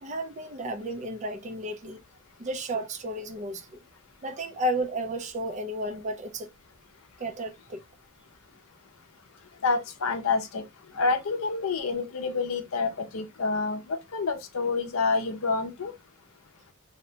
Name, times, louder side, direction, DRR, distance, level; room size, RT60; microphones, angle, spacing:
voice 1, 0.0-2.0 2.4-3.8 4.2-6.5 7.2-7.8, right 1 dB, 35° right, 0.4 m, -33 dB
voice 2, 9.6-10.6 10.9-15.9, left 4 dB, 75° left, 0.5 m, -28 dB
2.7 x 2.1 x 2.7 m
head